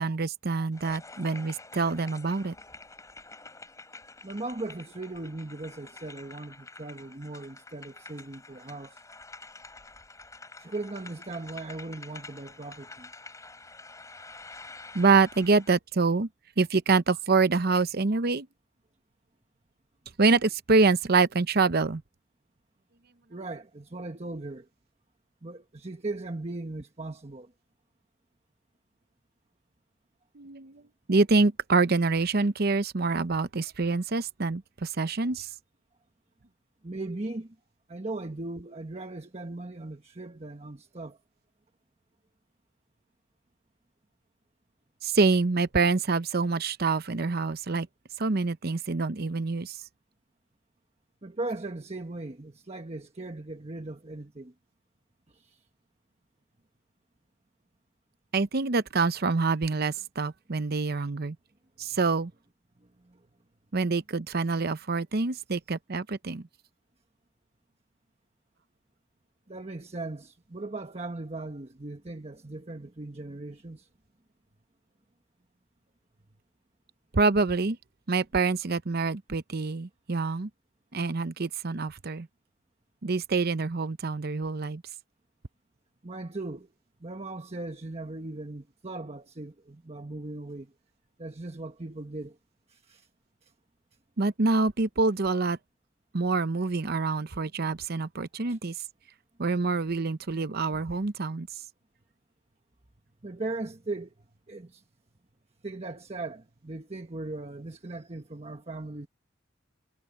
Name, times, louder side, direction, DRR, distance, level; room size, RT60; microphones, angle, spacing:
voice 1, 0.0-2.5 14.9-16.3 16.6-18.5 20.2-22.0 30.3-30.8 31.1-35.5 45.0-47.9 48.2-49.8 58.3-61.4 61.8-62.3 63.7-66.5 77.1-77.8 78.1-80.5 80.9-82.3 83.0-84.8 94.2-95.6 96.1-98.7 99.4-101.5, right 3 dB, 55° right, 0.8 m, -26 dB
sound 1, 0.7-15.8, left 3 dB, 20° left, 4.0 m, -48 dB
voice 2, 4.2-9.0 10.6-13.1 23.3-24.7 25.4-27.5 36.8-37.6 37.9-41.2 51.2-54.5 55.3-55.6 62.8-63.2 69.5-73.9 86.0-86.7 87.0-90.7 91.2-92.4 92.7-93.1 93.4-93.5 98.5-98.6 103.2-104.1 104.5-104.8 105.6-109.1, right 2 dB, 35° right, 1.2 m, -38 dB
head